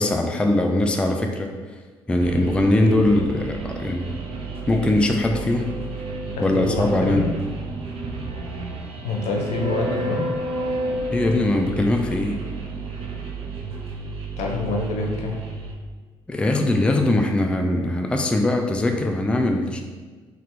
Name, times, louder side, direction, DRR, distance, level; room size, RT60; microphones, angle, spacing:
voice 1, 0.0-1.5 2.1-4.1 4.7-5.7 6.4-7.3 11.1-12.4 16.3-19.8, left 1 dB, 10° left, 3 dB, 0.3 m, -21 dB
sound 1, 2.2-15.7, right 2 dB, 50° right, 0.6 m, -31 dB
voice 2, 6.4-7.3 9.0-10.3 14.4-15.4, left 3 dB, 65° left, 0 dB, 0.7 m, -26 dB
2.9 x 2.5 x 3.4 m, 1.4 s
hypercardioid pair, 60°, 12 cm